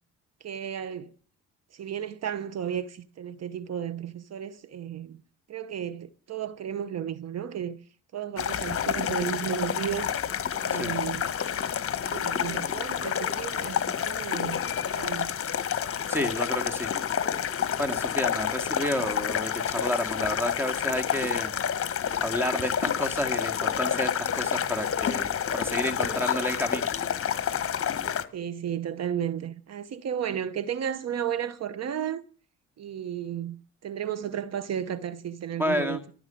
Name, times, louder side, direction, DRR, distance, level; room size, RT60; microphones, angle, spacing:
voice 1, 0.4-1.1 1.7-5.2 5.5-7.8 8.1-10.2 10.6-11.3 12.0-15.3 28.3-32.2 32.8-36.0, right 9 dB, 60° right, 1.0 m, -33 dB
sound 1, 8.4-28.3, left 8 dB, 45° left, 1.4 m, -29 dB
voice 2, 16.1-16.9 17.8-21.5 22.2-26.9 35.6-36.0, left 1 dB, 5° right, 2.2 m, -30 dB
14.5 x 7.3 x 10.0 m
cardioid pair, 90°, 30 cm